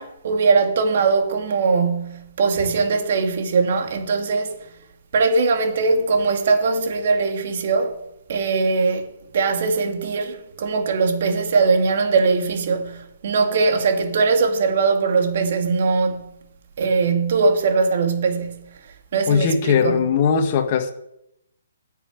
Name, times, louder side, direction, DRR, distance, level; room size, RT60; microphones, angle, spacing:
voice 1, 0.0-4.6 5.1-8.0 8.3-9.1 9.3-16.2 16.8-18.6 19.1-20.0, right 4 dB, 55° right, 2.2 m, -20 dB
voice 2, 19.3-20.9, left 6 dB, 40° left, 1.5 m, -19 dB
10.0 x 7.0 x 9.1 m
figure-of-eight pair, 135°, 0 cm